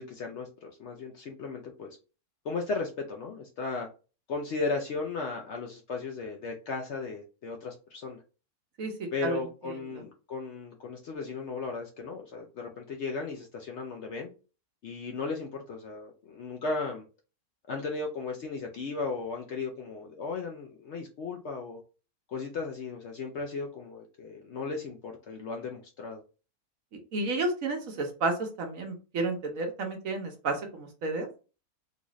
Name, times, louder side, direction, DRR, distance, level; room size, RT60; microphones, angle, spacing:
voice 1, 0.0-2.0 2.4-3.9 4.3-8.2 9.1-14.3 14.8-17.0 17.7-21.8 22.3-26.2, left 4 dB, 65° left, 2 dB, 0.7 m, -36 dB
voice 2, 27.1-31.3, right 3 dB, 65° right, 4 dB, 1.2 m, -31 dB
3.9 x 2.4 x 3.0 m, 0.34 s
omnidirectional pair, 1.6 m